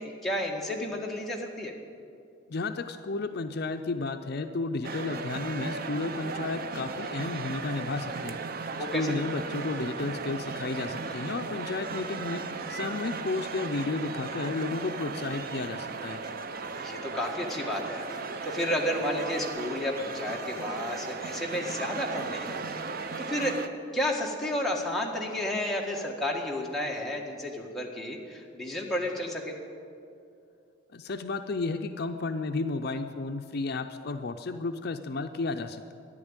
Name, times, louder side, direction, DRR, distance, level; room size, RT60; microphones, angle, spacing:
voice 1, 0.0-1.7 8.8-9.1 16.8-22.6 23.2-23.6 23.9-29.5, left 1 dB, ahead, -3 dB, 1.7 m, -32 dB
voice 2, 2.5-8.4 8.9-16.2 30.9-35.9, left 3 dB, 55° left, 7 dB, 0.5 m, -32 dB
sound 1, 4.8-23.7, right 4 dB, 50° right, 0.6 m, -36 dB
13.5 x 10.5 x 8.9 m, 2.5 s
head